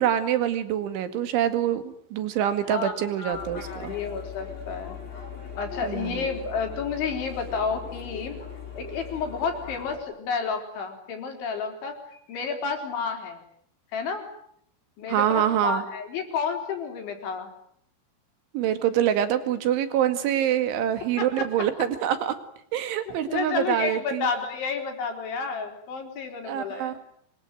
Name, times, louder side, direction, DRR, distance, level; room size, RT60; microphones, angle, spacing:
voice 1, 0.0-3.9 5.8-6.3 15.1-15.8 18.5-22.3 22.7-24.3 26.5-27.0, right 10 dB, 75° right, 9 dB, 4.4 m, -25 dB
voice 2, 3.2-5.0 5.6-8.4 8.8-12.0 12.3-13.4 13.9-14.3 15.0-17.5 21.2-21.5 23.1-27.0, left 5 dB, 70° left, 4 dB, 6.5 m, -31 dB
sound 1, 3.3-10.0, left 6 dB, 25° left, 6.5 m, -39 dB
26.0 x 24.0 x 9.2 m, 0.67 s
omnidirectional pair, 5.6 m